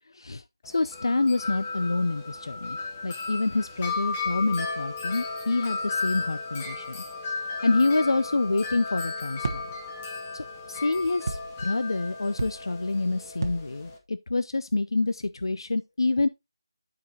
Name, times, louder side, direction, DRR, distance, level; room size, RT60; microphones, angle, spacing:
voice 1, 0.1-0.4 0.7-2.8 3.0-7.0 7.4-9.6 10.3-16.3, left 3 dB, 75° left, 0.5 m, -27 dB
Wind chime, 0.6-14.0, left 3 dB, 15° left, 0.7 m, -35 dB
sound 1, 9.4-10.0 11.3-11.7 12.4-12.9 13.4-14.0, right 3 dB, 45° right, 1.0 m, -34 dB
12.0 x 4.8 x 2.8 m
figure-of-eight pair, 175°, 2 cm